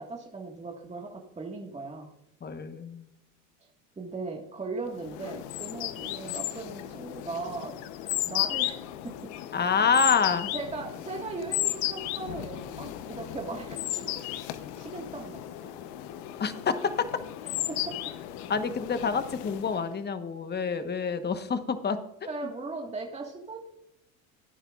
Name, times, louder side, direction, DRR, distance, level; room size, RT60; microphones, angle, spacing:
voice 1, 0.0-2.1 4.0-9.1 9.5-9.7 10.5-14.2 14.5-15.4 17.4-17.9 22.3-23.6, right 3 dB, 15° right, 0 dB, 1.7 m, -38 dB
voice 2, 2.4-3.1 9.5-10.5 16.4-16.9 18.5-22.0 22.4-22.5, left 5 dB, 25° left, 10 dB, 1.2 m, -27 dB
sound 1, 5.0-19.9, left 14 dB, 65° left, 0.9 m, -35 dB
17.5 x 9.8 x 2.4 m, 0.84 s
hypercardioid pair, 85°, 41 cm